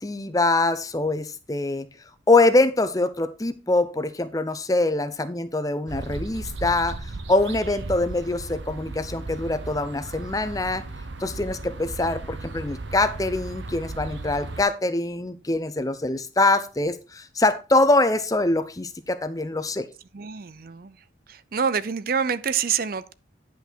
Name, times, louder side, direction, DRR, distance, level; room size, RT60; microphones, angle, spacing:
voice 1, 0.0-1.9 2.3-10.8 11.2-19.9, left 2 dB, 20° left, 0.6 m, -24 dB
sound 1, 5.9-14.6, right 2 dB, 75° right, 1.0 m, -36 dB
voice 2, 20.1-21.0 21.3-23.1, right 6 dB, 50° right, 0.5 m, -27 dB
10.0 x 5.8 x 4.4 m
head